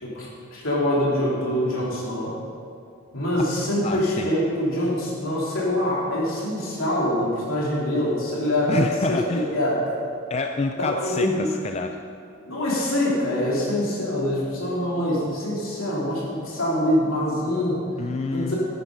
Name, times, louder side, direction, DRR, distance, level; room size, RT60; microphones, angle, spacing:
voice 1, 0.0-2.3 3.1-9.8 10.8-11.5 12.5-17.8 18.3-18.6, left 1 dB, 70° left, -5 dB, 3.2 m, -24 dB
voice 2, 3.8-4.3 8.7-9.5 10.3-12.0 18.0-18.5, left 3 dB, 30° left, 5 dB, 0.3 m, -27 dB
11.0 x 9.2 x 5.4 m, 2.4 s
head